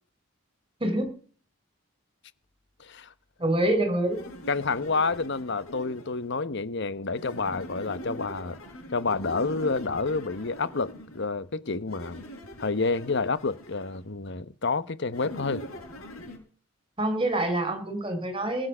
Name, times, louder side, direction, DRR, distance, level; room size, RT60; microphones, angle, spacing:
voice 1, 2.8-3.1 4.5-8.6 8.9-12.2 12.6-15.6, left 4 dB, 55° left, 1.0 m, -29 dB
voice 2, 3.4-4.2 7.4-7.6 17.0-18.7, right 1 dB, 25° right, 4.7 m, -26 dB
sound 1, 4.1-6.3 7.1-11.3 11.9-14.0 15.1-16.4, equal, 85° left, 6.8 m, -42 dB
20.5 x 9.4 x 6.1 m
head